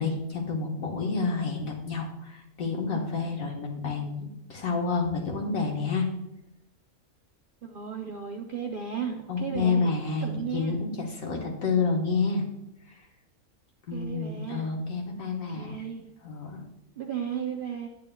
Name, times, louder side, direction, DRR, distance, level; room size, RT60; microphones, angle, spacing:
voice 1, 0.0-6.1 9.3-12.4 13.9-15.8 16.2-16.6, left 4 dB, 65° left, 0 dB, 1.6 m, -29 dB
voice 2, 7.6-10.8 13.9-14.7 15.5-16.1 17.0-17.9, right 7 dB, 60° right, 2 dB, 0.5 m, -35 dB
9.1 x 8.3 x 2.2 m, 0.85 s
omnidirectional pair, 1.5 m